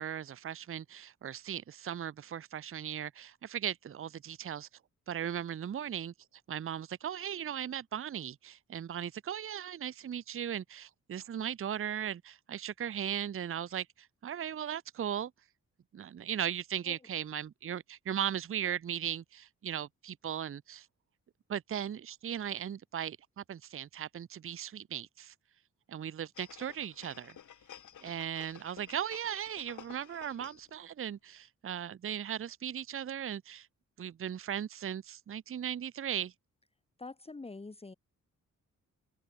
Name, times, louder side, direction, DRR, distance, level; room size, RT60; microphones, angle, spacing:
voice 1, 0.0-4.7 5.1-6.1 6.5-15.3 15.9-20.9 21.5-25.3 25.9-27.3 28.0-33.7 34.0-36.3, right 9 dB, 45° right, 0.7 m, -37 dB
sound 1, 26.4-30.8 31.1-31.2, left 9 dB, 75° left, 2.9 m, -53 dB
voice 2, 37.0-37.9, left 3 dB, 20° left, 1.9 m, -45 dB
open air
wide cardioid pair, 130°, 30 cm